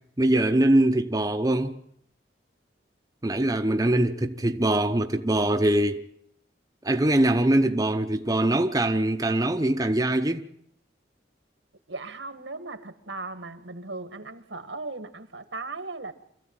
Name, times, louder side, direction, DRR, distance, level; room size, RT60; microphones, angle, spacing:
voice 1, 0.2-1.8 3.2-6.0 6.8-10.4, right 1 dB, 20° right, 0.8 m, -23 dB
voice 2, 11.9-16.1, right 3 dB, 85° right, 1.9 m, -37 dB
25.5 x 14.5 x 8.9 m
head